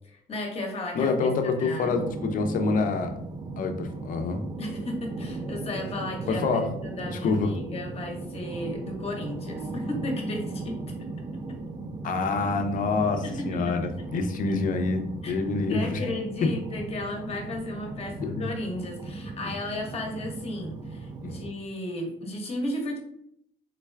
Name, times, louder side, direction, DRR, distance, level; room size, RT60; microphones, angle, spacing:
voice 1, 0.1-1.9 4.6-6.4 6.8-10.8 13.2-14.1 15.2-15.3 15.7-23.0, left 1 dB, 35° left, 1 dB, 1.0 m, -34 dB
voice 2, 0.9-3.1 3.6-4.4 6.3-6.7 7.1-7.5 12.0-15.0 15.3-16.0 18.2-18.5 21.2-21.3, left 4 dB, 50° left, 6 dB, 0.6 m, -26 dB
sound 1, 1.8-21.5, right 3 dB, 25° right, 0.3 m, -37 dB
3.8 x 2.2 x 3.3 m, 0.71 s
cardioid pair, 110°, 17 cm